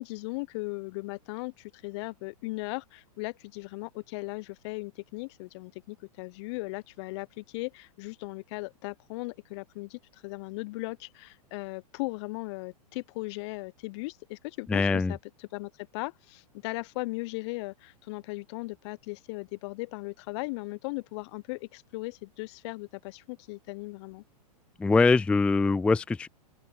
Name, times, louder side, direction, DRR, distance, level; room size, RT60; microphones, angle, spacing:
voice 1, 0.0-24.2, left 25 dB, 45° left, 0.9 m, -38 dB
voice 2, 14.7-15.1 24.8-26.3, left 3 dB, 5° left, 0.4 m, -23 dB
open air
figure-of-eight pair, 110°, 20 cm